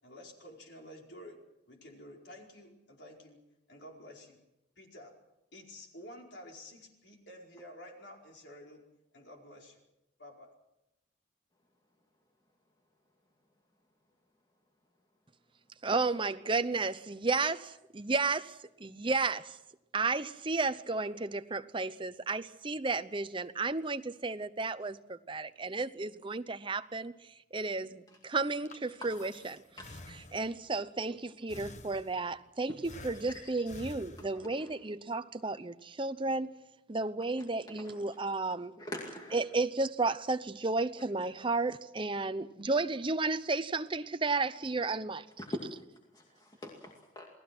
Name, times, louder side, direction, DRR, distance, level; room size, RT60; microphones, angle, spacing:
voice 1, 0.0-3.4 3.7-4.4 4.8-5.1 5.5-8.8 9.1-9.8 10.2-10.5, left 1 dB, 65° left, 4.9 m, -51 dB
voice 2, 15.8-18.5 18.8-19.6 19.9-27.1 27.5-29.6 30.3-36.5 36.9-38.7 39.3-45.3, right 3 dB, 25° right, 0.8 m, -33 dB
Breathing, 28.4-30.7 31.5-32.4 32.8-34.7, left 2 dB, 40° left, 1.4 m, -50 dB
voice 3, 33.1-33.8 34.2-34.7 37.8-37.9 38.8-39.5 45.4-45.7 46.1-47.3, left 1 dB, 20° left, 2.4 m, -44 dB
28.5 x 19.0 x 6.1 m
head